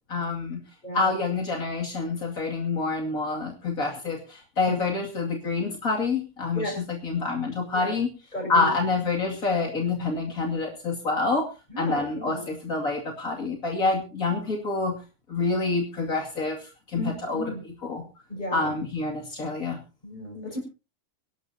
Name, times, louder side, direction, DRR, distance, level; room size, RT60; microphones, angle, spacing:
voice 1, 0.1-0.6 0.9-8.1 8.5-11.5 11.8-15.0 15.3-17.5 17.8-18.0 18.5-19.8, left 3 dB, 80° left, 1 dB, 2.9 m, -27 dB
voice 2, 0.8-1.1 4.7-4.8 6.5-6.8 7.7-8.0 8.3-8.7 11.7-12.5 17.0-17.6 18.3-18.7 20.0-20.6, left 1 dB, 30° left, 2 dB, 7.2 m, -34 dB
25.0 x 11.5 x 2.8 m, 0.31 s
omnidirectional pair, 1.4 m